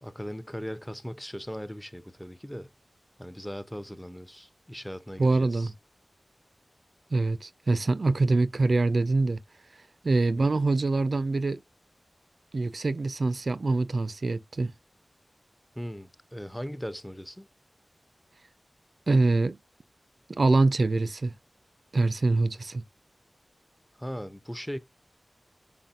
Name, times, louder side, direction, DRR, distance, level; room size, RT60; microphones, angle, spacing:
voice 1, 0.0-2.7 3.2-5.7 10.4-10.5 15.8-17.5 24.0-24.8, equal, 5° left, 0.4 m, -38 dB
voice 2, 5.2-5.7 7.1-9.4 10.0-11.6 12.5-14.7 19.1-19.6 20.4-21.3 21.9-22.8, right 3 dB, 65° right, 0.3 m, -24 dB
4.1 x 3.9 x 2.3 m
wide cardioid pair, 50°, 0 cm